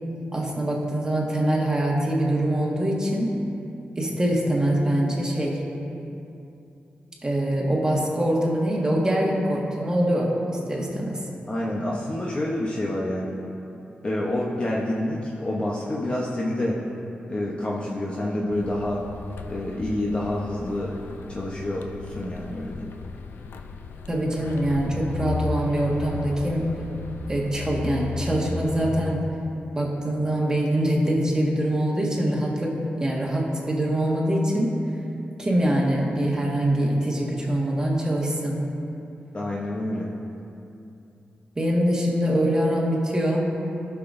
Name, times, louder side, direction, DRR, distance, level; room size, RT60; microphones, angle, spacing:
voice 1, 0.3-3.4 4.0-5.6 7.2-10.4 10.7-11.2 24.1-26.8 27.3-29.3 29.7-34.8 35.4-38.6 41.5-43.5, right 1 dB, 20° right, -3 dB, 1.6 m, -24 dB
voice 2, 11.5-13.3 14.0-16.8 17.3-19.0 19.5-22.9 39.3-40.1, left 1 dB, 30° left, -4 dB, 0.8 m, -28 dB
sound 1, 18.5-29.2, left 4 dB, 85° left, 0.4 m, -35 dB
15.5 x 5.9 x 2.6 m, 2.8 s
cardioid pair, 85°, 3 cm